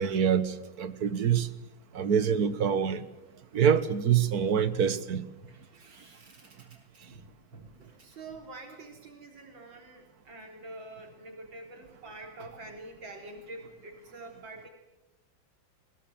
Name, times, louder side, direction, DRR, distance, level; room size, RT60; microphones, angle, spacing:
voice 1, 0.0-1.5 1.9-3.0 3.5-5.3, right 8 dB, 55° right, 1.7 m, -25 dB
voice 2, 5.4-14.7, right 2 dB, 75° right, 4.4 m, -47 dB
22.0 x 21.5 x 7.7 m
omnidirectional pair, 2.1 m